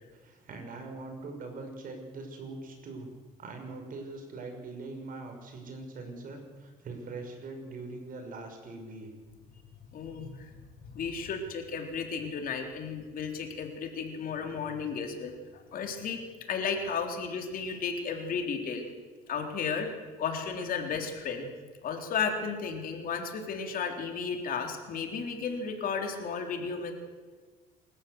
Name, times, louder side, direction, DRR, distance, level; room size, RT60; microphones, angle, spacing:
voice 1, 0.2-3.1 3.4-9.1, right 3 dB, 55° right, 5 dB, 5.9 m, -42 dB
voice 2, 9.9-10.6 10.9-16.2 16.5-18.9 19.3-21.5 21.8-26.9, left 5 dB, 55° left, 4 dB, 3.8 m, -34 dB
27.0 x 14.0 x 7.9 m, 1.5 s
cardioid pair, 110°, 17 cm